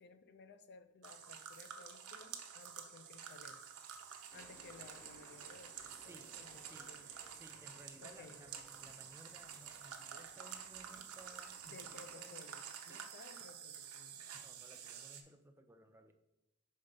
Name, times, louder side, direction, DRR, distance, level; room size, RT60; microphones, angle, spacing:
voice 1, 0.0-3.6 4.3-7.1 8.0-8.4 11.6-14.3, left 4 dB, 50° left, 11 dB, 0.4 m, -58 dB
sound 1, 1.0-15.2, right 8 dB, 75° right, 0.7 m, -50 dB
sound 2, 4.3-12.2, equal, 10° left, 0.9 m, -64 dB
voice 2, 5.8-6.9 7.2-12.5 12.9-13.0 14.3-16.1, right 1 dB, 10° right, 6 dB, 0.4 m, -59 dB
5.6 x 3.8 x 5.1 m, 0.91 s
head